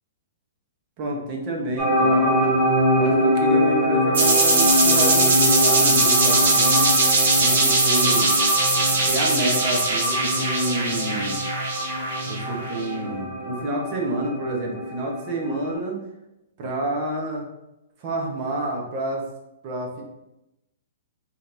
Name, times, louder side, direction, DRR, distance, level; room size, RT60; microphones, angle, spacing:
voice 1, 1.0-2.5 3.0-6.9 7.4-8.4 9.1-11.4 12.3-16.0 16.6-17.5 18.0-19.3 19.6-20.0, right 1 dB, 30° right, 0 dB, 0.8 m, -28 dB
sound 1, 1.8-15.7, equal, 10° right, 1.1 m, -24 dB
sound 2, 4.1-12.7, right 2 dB, 65° right, 1.3 m, -20 dB
5.0 x 2.9 x 2.6 m, 0.92 s
hypercardioid pair, 170°, 0 cm